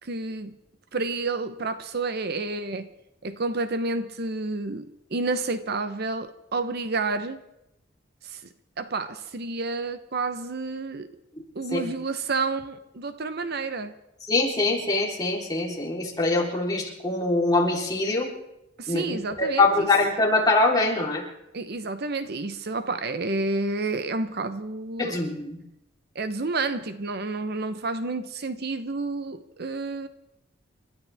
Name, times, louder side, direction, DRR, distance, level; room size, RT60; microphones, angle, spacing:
voice 1, 0.0-0.6 0.9-2.9 3.2-7.4 8.2-8.5 8.8-11.1 11.5-13.9 18.8-19.9 21.5-25.2 26.1-30.1, right 3 dB, 60° right, 10 dB, 0.9 m, -30 dB
voice 2, 14.3-18.3 18.9-21.2 25.0-25.6, left 2 dB, 20° left, -3 dB, 3.7 m, -23 dB
29.5 x 13.0 x 3.5 m, 0.87 s
head